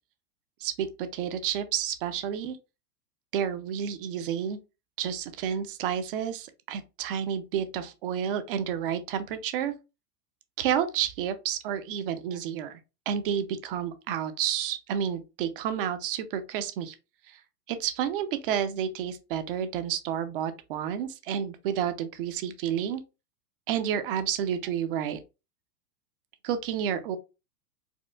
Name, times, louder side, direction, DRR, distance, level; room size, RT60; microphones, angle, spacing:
voice 1, 0.6-2.6 3.3-4.6 5.0-9.7 10.6-12.8 13.1-16.9 17.3-17.4 17.7-23.0 23.7-25.2 26.4-27.2, right 9 dB, 40° right, 0.4 m, -30 dB
4.3 x 2.4 x 2.2 m
hypercardioid pair, 120°, 47 cm